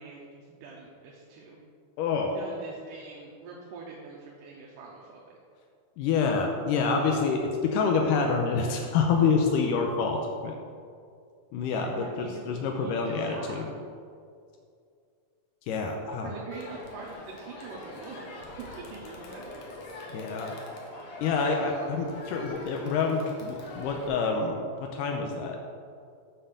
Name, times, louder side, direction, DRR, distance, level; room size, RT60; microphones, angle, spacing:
voice 1, 0.0-1.6 2.3-5.4 11.7-13.7 16.2-19.6, right 4 dB, 85° right, -3 dB, 2.5 m, -44 dB
voice 2, 2.0-2.4 6.0-10.6 11.5-13.7 15.7-16.3 20.1-20.6 21.2-25.6, left 5 dB, 85° left, 2 dB, 2.3 m, -27 dB
Crowd, 16.5-24.1, left 2 dB, 65° left, 2.1 m, -43 dB
9.1 x 4.5 x 6.7 m, 2.3 s
omnidirectional pair, 3.7 m